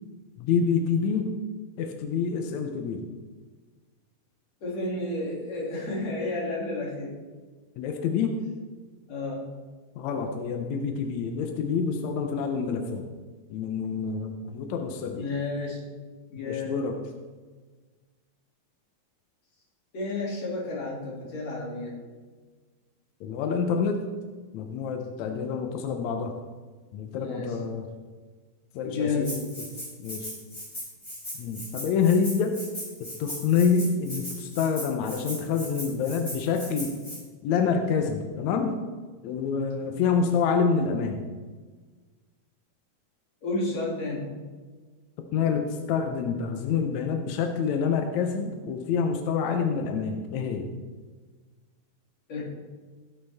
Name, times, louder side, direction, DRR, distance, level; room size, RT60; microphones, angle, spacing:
voice 1, 0.4-1.3 1.8-3.0 7.8-8.4 10.0-13.0 13.5-15.3 16.4-17.0 23.2-24.0 24.5-26.3 26.9-27.9 28.7-29.3 30.0-30.3 31.4-32.6 33.0-36.9 37.4-38.8 39.2-41.2 45.3-50.7, left 6 dB, 75° left, 5 dB, 1.7 m, -27 dB
voice 2, 4.6-7.2 9.1-9.5 15.2-15.8 16.3-16.8 19.9-21.9 25.3-25.4 27.1-27.6 28.8-29.4 43.4-44.3 52.3-52.4, left 2 dB, 45° left, -4 dB, 3.7 m, -31 dB
Rattle (instrument), 29.2-37.2, equal, 15° left, 4.2 m, -38 dB
16.0 x 8.7 x 3.5 m, 1.4 s
omnidirectional pair, 4.2 m